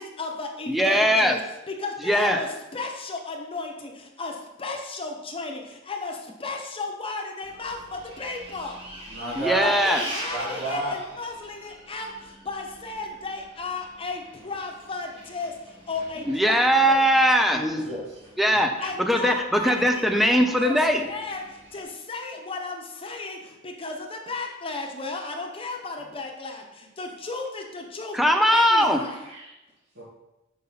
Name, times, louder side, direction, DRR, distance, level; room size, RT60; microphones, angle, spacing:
voice 1, 0.0-8.8 9.6-17.1 18.8-20.8 21.1-28.2 28.5-29.2, left 3 dB, 30° left, 2 dB, 0.8 m, -34 dB
voice 2, 0.7-1.4 2.0-2.4 9.4-10.0 16.3-17.6 18.4-18.7 19.0-21.1 28.1-29.0, equal, ahead, 4 dB, 0.5 m, -20 dB
Bus, 7.4-21.8, right 1 dB, 30° right, 1.5 m, -43 dB
voice 3, 9.1-9.7 10.3-10.9 17.5-18.2 29.3-29.5 30.0-30.1, right 1 dB, 75° right, -8 dB, 2.2 m, -31 dB
5.4 x 5.4 x 4.0 m, 0.95 s
head